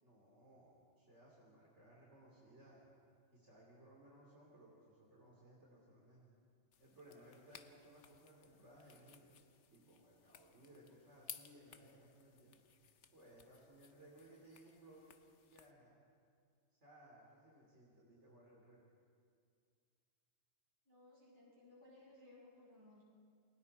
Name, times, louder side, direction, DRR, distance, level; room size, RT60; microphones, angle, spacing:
voice 1, 0.0-2.8 3.3-6.2 6.8-9.4 9.7-12.6 13.1-15.2 15.4-16.0 16.8-18.8, right 1 dB, 75° right, -4 dB, 3.5 m, -62 dB
sound 1, 6.7-15.7, left 8 dB, 80° left, 1.2 m, -59 dB
voice 2, 20.8-23.0, left 2 dB, 45° right, -6 dB, 6.4 m, -61 dB
29.0 x 22.0 x 4.3 m, 2.2 s
omnidirectional pair, 1.2 m